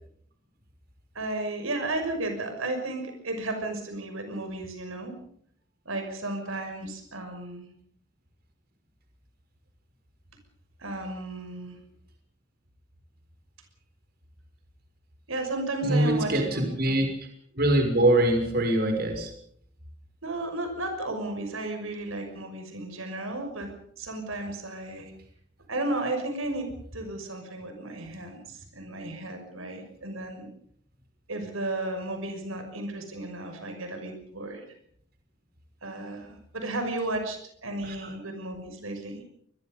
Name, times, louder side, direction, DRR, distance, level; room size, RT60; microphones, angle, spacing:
voice 1, 1.1-5.2 5.8-7.7 10.8-11.8 15.3-16.6 16.9-17.0 20.2-23.7 24.0-25.1 25.7-30.5 31.3-34.6 35.8-39.2, right 2 dB, 85° right, 6 dB, 6.2 m, -34 dB
voice 2, 15.8-17.3 17.5-19.3 37.8-38.1, right 1 dB, 50° right, 4 dB, 6.1 m, -24 dB
27.0 x 22.5 x 5.4 m, 0.65 s
head